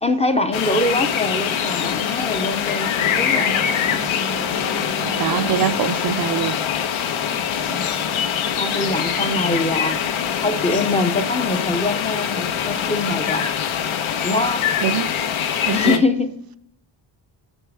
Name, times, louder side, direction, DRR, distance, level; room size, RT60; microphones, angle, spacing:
voice 1, 0.0-3.5 5.5-5.6 7.7-7.9 8.5-10.0 10.4-13.5 14.2-14.6 15.7-16.6, left 2 dB, 15° left, 0.5 m, -23 dB
sound 1, 0.5-16.0, left 8 dB, 85° left, 1.1 m, -23 dB
sound 2, 3.0-6.1, left 2 dB, 70° left, 2.9 m, -31 dB
voice 2, 5.2-6.5 14.8-15.1 15.7-16.0, right 10 dB, 50° right, 0.5 m, -23 dB
8.9 x 6.0 x 4.6 m
wide cardioid pair, 170°, 47 cm